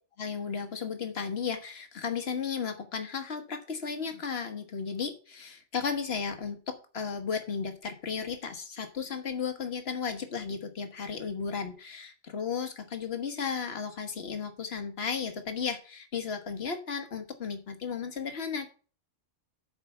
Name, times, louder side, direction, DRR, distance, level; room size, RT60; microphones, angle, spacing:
voice 1, 0.2-18.7, left 6 dB, 60° left, 7 dB, 1.5 m, -34 dB
7.1 x 4.9 x 6.9 m, 0.38 s
omnidirectional pair, 1.2 m